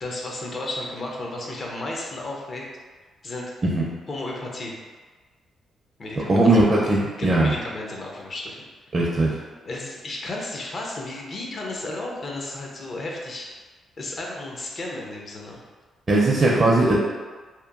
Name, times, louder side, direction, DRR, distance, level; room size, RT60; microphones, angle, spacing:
voice 1, 0.0-2.6 3.2-3.5 4.1-4.8 6.0-6.6 7.2-8.6 9.6-13.5 14.0-15.6, left 2 dB, 50° left, -1 dB, 0.6 m, -33 dB
voice 2, 6.3-7.5 8.9-9.4 16.1-17.0, right 2 dB, 40° right, -4 dB, 0.4 m, -19 dB
2.8 x 2.1 x 2.4 m, 1.4 s
supercardioid pair, 55°, 0 cm